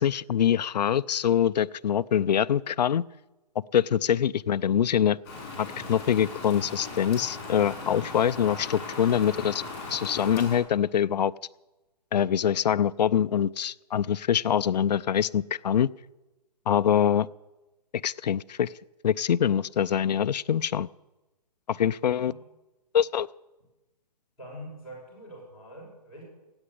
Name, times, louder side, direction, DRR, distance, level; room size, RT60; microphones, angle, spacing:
voice 1, 0.0-3.0 3.7-5.2 5.6-9.6 9.9-11.3 12.1-15.9 16.7-17.3 18.0-18.7 19.0-20.9 21.7-22.3 22.9-23.3, left 9 dB, 80° left, 14 dB, 0.5 m, -24 dB
Rain, 5.2-10.6, left 3 dB, 25° left, 5.4 m, -38 dB
voice 2, 24.4-26.2, equal, ahead, -12 dB, 6.3 m, -44 dB
14.0 x 8.8 x 9.9 m, 1.1 s
hypercardioid pair, 170°, 21 cm